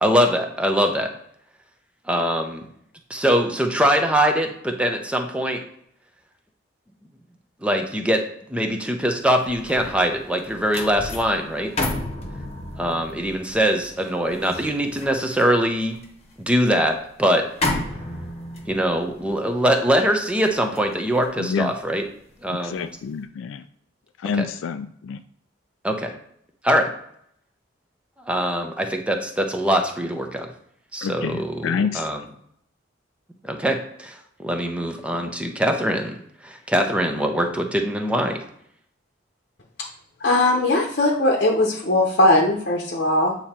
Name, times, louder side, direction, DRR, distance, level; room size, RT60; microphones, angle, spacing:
voice 1, 0.0-1.1 2.1-2.6 3.1-5.6 7.6-8.2 8.5-11.7 12.8-15.9 16.4-17.5 18.7-22.0 22.4-22.9 24.4-24.5 25.8-26.1 26.6-26.9 28.2-30.5 30.9-32.2 33.4-36.1 36.4-38.4, equal, 5° right, 4 dB, 0.7 m, -22 dB
sound 1, 9.2-22.5 22.9-23.2, left 1 dB, 35° left, 1.1 m, -33 dB
voice 2, 21.4-21.7 22.5-23.6 24.2-25.2 31.0-32.1, left 6 dB, 85° left, 9 dB, 0.3 m, -27 dB
voice 3, 40.2-43.4, left 1 dB, 50° left, -1 dB, 0.9 m, -19 dB
8.5 x 2.9 x 4.3 m, 0.70 s
head